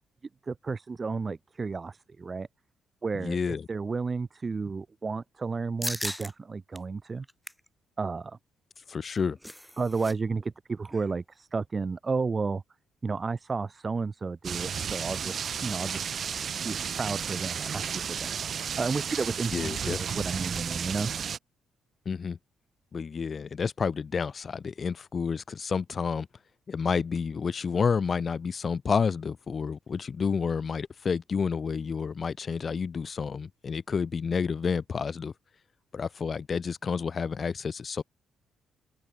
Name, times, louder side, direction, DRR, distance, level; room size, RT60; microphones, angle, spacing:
voice 1, 0.5-2.5 3.0-3.4 3.7-7.2 8.0-8.4 9.8-12.6 13.0-16.1 16.6-18.3 18.8-21.1, right 4 dB, 30° right, 2.4 m, -32 dB
voice 2, 3.1-3.7 8.9-9.4 19.5-20.2 22.0-22.4 22.9-26.3 26.7-35.3 35.9-38.0, left 5 dB, 40° left, 1.7 m, -30 dB
sound 1, 5.8-6.3 6.7-6.8 7.2-7.7 9.0-10.1 10.4-10.5 10.9-11.1, equal, ahead, 2.4 m, -37 dB
sound 2, 14.4-21.4, right 7 dB, 50° right, 0.8 m, -33 dB
open air
cardioid pair, 90°, 0 cm